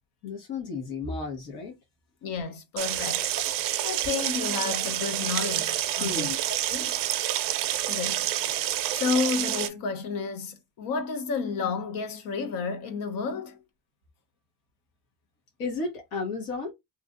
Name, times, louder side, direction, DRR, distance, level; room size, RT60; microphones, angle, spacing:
voice 1, 0.2-1.7 6.0-6.4 15.6-16.7, left 4 dB, 90° left, 1.4 m, -33 dB
voice 2, 2.2-7.0 7.9-8.7 8.9-13.6, left 5 dB, 70° left, 0.9 m, -31 dB
sound 1, 2.8-9.7, right 13 dB, 70° right, 0.5 m, -28 dB
3.2 x 2.8 x 2.5 m
cardioid pair, 145°, 35 cm